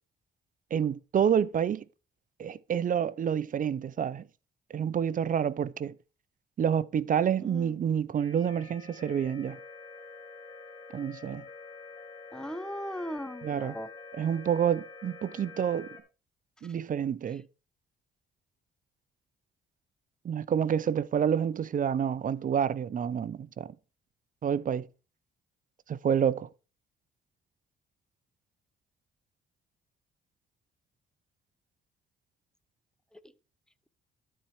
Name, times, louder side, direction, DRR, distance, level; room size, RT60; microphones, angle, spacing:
voice 1, 0.7-1.8 2.4-4.3 4.7-6.0 6.6-9.6 10.9-11.4 13.4-13.8 14.1-16.0 16.6-17.5 20.2-23.8 24.4-24.9 25.9-26.5, right 8 dB, 45° right, 0.5 m, -28 dB
voice 2, 7.4-7.7 12.3-13.9, equal, 5° left, 0.8 m, -38 dB
sound 1, 8.2-16.0, left 4 dB, 20° left, 2.1 m, -47 dB
12.5 x 4.4 x 4.7 m
cardioid pair, 90°, 20 cm